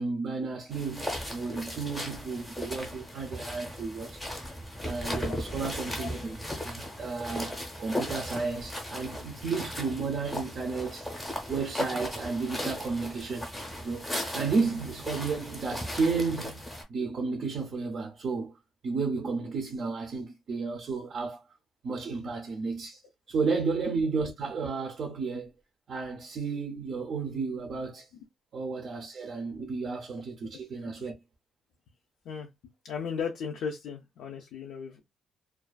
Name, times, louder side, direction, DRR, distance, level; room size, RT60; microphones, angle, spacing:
voice 1, 0.0-4.2 4.8-11.1 11.5-13.5 13.8-16.6 16.9-18.5 18.8-21.4 21.8-23.0 23.3-25.5 25.9-28.1 28.5-31.1, right 4 dB, 40° right, 0.5 m, -32 dB
sound 1, 0.7-16.8, left 1 dB, 5° left, 0.7 m, -37 dB
voice 2, 32.8-35.0, left 6 dB, 65° left, 0.4 m, -36 dB
2.4 x 2.3 x 2.2 m
cardioid pair, 170°, 0 cm